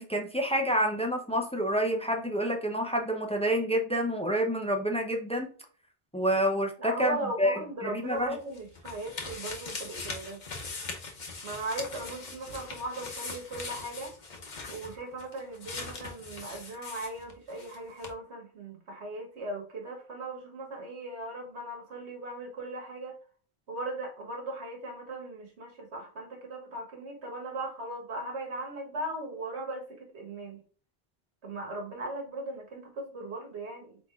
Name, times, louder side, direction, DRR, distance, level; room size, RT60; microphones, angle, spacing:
voice 1, 0.0-5.5 6.1-8.4, equal, 10° left, 3 dB, 0.4 m, -28 dB
voice 2, 6.8-10.4 11.4-14.1 14.7-23.2 23.7-30.6 31.4-34.0, right 1 dB, 75° right, 1 dB, 1.5 m, -38 dB
sound 1, 8.1-17.8 18.0-18.1, left 3 dB, 45° left, 0.9 m, -41 dB
4.5 x 4.0 x 2.4 m, 0.42 s
omnidirectional pair, 1.1 m